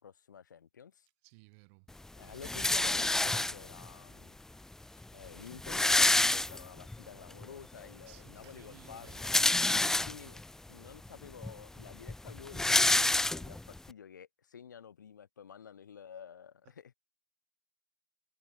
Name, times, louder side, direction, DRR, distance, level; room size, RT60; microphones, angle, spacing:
voice 1, 0.0-1.1 2.1-4.3 5.1-9.3 9.9-10.4 10.7-16.9, left 8 dB, 70° left, 7.4 m, -50 dB
voice 2, 1.2-1.9 2.2-2.5 8.1-9.2 9.8-10.3 16.6-16.7, right 34 dB, 45° right, 6.7 m, -59 dB
sound 1, 2.4-3.9 4.7-4.8 5.0-5.1 5.4-7.0 7.4-7.5 8.9-10.4 11.1-11.2 11.4-13.8, left 2 dB, 5° left, 0.4 m, -28 dB
figure-of-eight pair, 90°, 10 cm